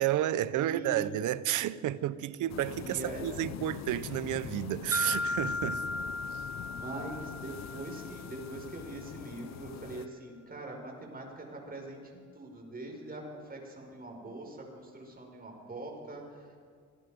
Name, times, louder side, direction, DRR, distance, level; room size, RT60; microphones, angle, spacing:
voice 1, 0.0-5.8, right 13 dB, 80° right, 0.8 m, -31 dB
voice 2, 0.6-1.1 2.8-3.2 6.6-16.6, right 2 dB, 30° right, 5.9 m, -43 dB
sound 1, 2.5-10.1, left 12 dB, 60° left, 0.6 m, -44 dB
sound 2, 4.9-8.9, left 2 dB, 10° right, 1.1 m, -36 dB
26.0 x 19.0 x 5.3 m
cardioid pair, 90°, 30 cm